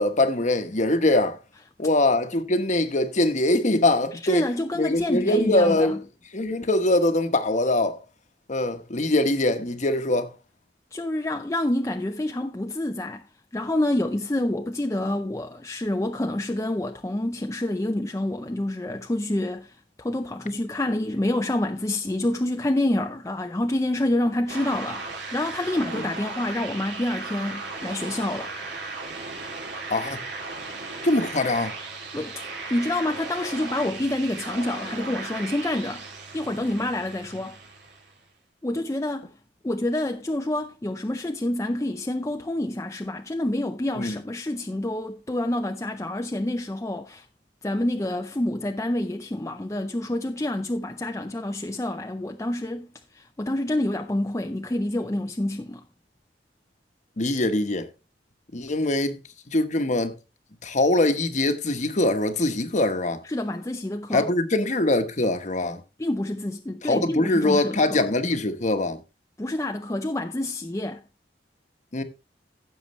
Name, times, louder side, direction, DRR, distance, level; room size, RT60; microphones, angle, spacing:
voice 1, 0.0-1.4 1.8-4.5 4.7-6.0 6.3-8.0 8.5-10.3 25.9-26.0 29.9-30.2 31.0-31.7 43.9-44.2 57.2-57.9 58.5-59.2 59.5-60.1 60.6-63.2 64.1-65.8 66.8-69.0 71.9-72.0, left 2 dB, 45° left, 1.1 m, -23 dB
voice 2, 4.2-6.0 10.9-13.2 13.5-28.5 32.1-32.4 32.7-36.1 36.3-37.6 38.6-39.3 39.6-47.3 47.6-52.9 53.1-55.8 63.3-64.3 66.0-68.0 69.4-71.0, left 1 dB, 15° left, 0.5 m, -27 dB
sound 1, 24.5-38.2, right 3 dB, 70° right, 2.8 m, -36 dB
15.5 x 6.5 x 3.1 m
head